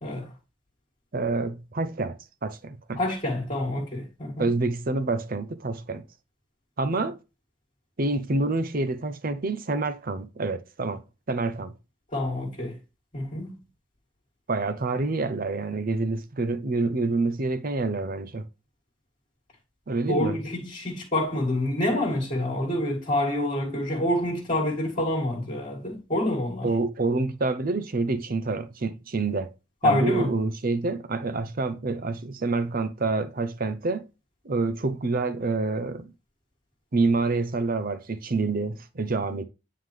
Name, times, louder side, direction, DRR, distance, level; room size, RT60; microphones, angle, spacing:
voice 1, 1.1-2.2 2.4-3.0 4.4-6.0 6.8-7.2 8.0-11.0 11.3-11.7 14.5-18.5 19.9-20.4 26.6-29.5 29.8-34.1 34.4-36.1 36.9-39.4, right 3 dB, 45° right, 0.6 m, -27 dB
voice 2, 3.0-4.5 12.1-12.8 13.1-13.6 20.1-26.7 29.8-30.3, left 1 dB, 35° left, 1.8 m, -27 dB
9.3 x 3.8 x 3.2 m
head